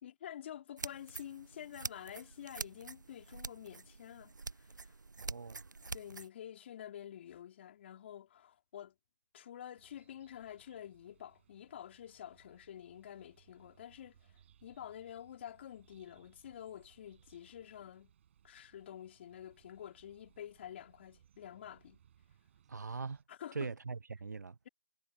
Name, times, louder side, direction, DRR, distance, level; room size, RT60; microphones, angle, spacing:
voice 1, 0.0-4.9 5.9-8.9 9.3-18.1 18.4-22.0 23.3-23.7, left 10 dB, 40° left, 3.0 m, -49 dB
sound 1, 0.8-6.3, right 3 dB, 85° right, 0.5 m, -46 dB
voice 2, 5.2-5.7 22.7-23.2 23.5-24.6, right 4 dB, 70° right, 1.2 m, -41 dB
sound 2, 9.8-23.2, right 9 dB, 40° right, 6.6 m, -67 dB
figure-of-eight pair, 145°, 10 cm